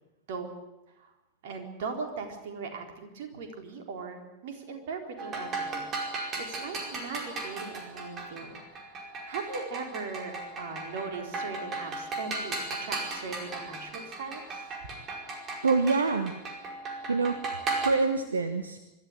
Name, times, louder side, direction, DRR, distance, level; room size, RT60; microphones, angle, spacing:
voice 1, 1.4-5.9 6.4-8.6 8.9-9.0 9.3-14.6, right 4 dB, 55° right, 4 dB, 4.1 m, -39 dB
sound 1, 5.2-17.9, right 3 dB, 25° right, 4.9 m, -36 dB
voice 2, 15.6-16.3 17.1-17.4 17.8-18.8, right 4 dB, 75° right, 10 dB, 1.2 m, -25 dB
24.5 x 13.5 x 9.7 m, 0.99 s
figure-of-eight pair, 90°, 0 cm